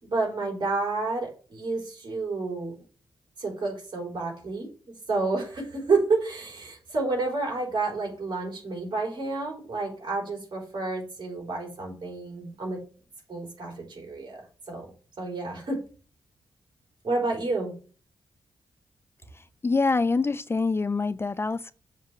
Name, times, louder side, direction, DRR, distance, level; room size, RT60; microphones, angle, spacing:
voice 1, 0.0-2.8 3.4-4.7 5.1-12.8 13.3-14.4 14.7-14.9 15.2-15.8 17.0-17.7, right 3 dB, 55° right, 3.7 m, -29 dB
voice 2, 19.3-21.7, left 4 dB, 25° left, 0.3 m, -26 dB
7.3 x 4.0 x 6.0 m
cardioid pair, 60°, 9 cm